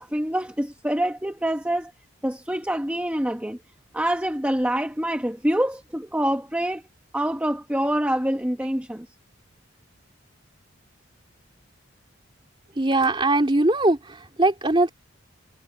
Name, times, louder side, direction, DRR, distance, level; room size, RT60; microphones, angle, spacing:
voice 1, 0.0-1.9 2.2-3.6 3.9-6.8 7.1-9.1, right 1 dB, 5° right, 1.1 m, -26 dB
voice 2, 12.7-14.9, right 2 dB, 25° right, 2.9 m, -21 dB
head